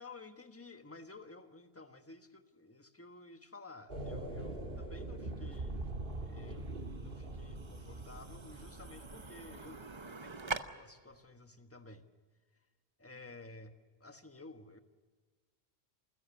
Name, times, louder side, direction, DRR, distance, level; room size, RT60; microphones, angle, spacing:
voice 1, 0.0-5.9 6.2-12.1 12.5-12.7 13.0-14.8, left 2 dB, 15° left, 7 dB, 1.3 m, -53 dB
sound 1, 3.9-10.1, right 2 dB, 55° right, 1.9 m, -43 dB
sound 2, 5.2-10.6, right 4 dB, 30° right, 0.9 m, -46 dB
28.0 x 15.5 x 7.1 m, 1.5 s
omnidirectional pair, 1.1 m